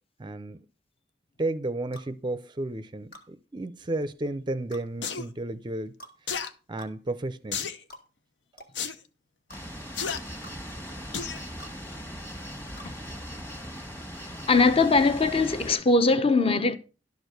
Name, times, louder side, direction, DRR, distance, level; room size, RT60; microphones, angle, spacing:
voice 1, 0.2-0.6 1.4-5.9 6.2-6.3 6.7-7.7, right 2 dB, 25° right, 0.5 m, -33 dB
sound 1, 1.9-2.1 3.1-3.3 4.7-4.9 6.0-6.2 6.8-6.9 7.9-8.1 8.6-8.7 9.5-9.6 10.4-10.6 11.6-11.8 12.8-12.9, equal, 60° left, 1.8 m, -47 dB
sound 2, 5.0-5.2 6.3-6.5 7.5-7.8 8.7-9.0 9.9-10.2 11.1-11.4 11.9-12.0, left 6 dB, 90° left, 0.8 m, -31 dB
sound 3, 9.5-15.7, equal, 15° left, 1.4 m, -39 dB
voice 2, 14.5-16.8, left 3 dB, 35° left, 0.8 m, -21 dB
12.0 x 4.6 x 6.5 m
head